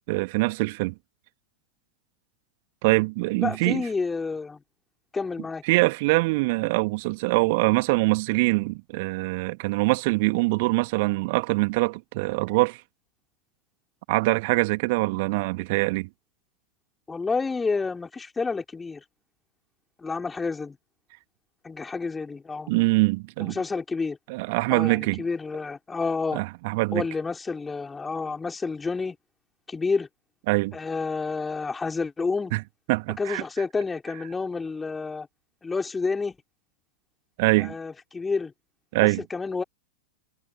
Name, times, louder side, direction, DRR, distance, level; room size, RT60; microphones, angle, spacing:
voice 1, 0.1-0.9 2.8-3.9 5.6-12.8 14.1-16.1 22.7-23.6 24.3-25.2 26.3-27.0 30.5-30.8 32.5-32.6 32.9-33.4 37.4-37.7 38.9-39.2, right 25 dB, 50° right, 2.1 m, -23 dB
voice 2, 3.4-4.6 5.1-5.6 17.1-19.0 20.0-20.8 21.6-22.7 23.4-24.2 24.7-26.4 26.9-29.2 29.7-30.1 30.7-32.5 33.2-35.3 35.6-36.4 37.6-38.5 39.0-39.6, left 4 dB, 15° left, 4.8 m, -29 dB
figure-of-eight pair, 90°, 0 cm